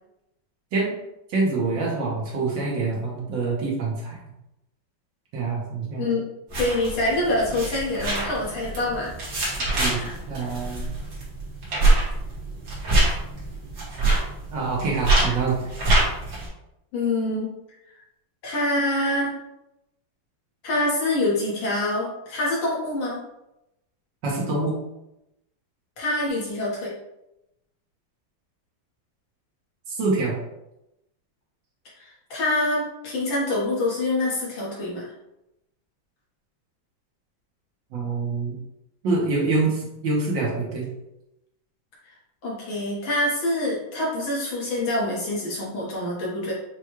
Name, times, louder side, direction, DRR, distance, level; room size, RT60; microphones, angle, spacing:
voice 1, 1.3-4.2 5.3-6.1 9.8-10.0 10.3-10.9 14.5-15.6 24.2-24.7 29.9-30.4 37.9-38.6 39.0-40.9, right 3 dB, 70° right, -3 dB, 1.7 m, -25 dB
sound 1, 6.5-16.5, right 2 dB, 55° right, 1.7 m, -25 dB
voice 2, 6.6-9.1 9.9-10.1 16.9-17.5 17.9-18.0 18.4-19.4 20.6-23.2 26.0-26.9 32.0-35.1 42.4-46.5, left 1 dB, 75° left, -5 dB, 2.1 m, -25 dB
6.0 x 2.3 x 3.1 m, 0.90 s
omnidirectional pair, 2.1 m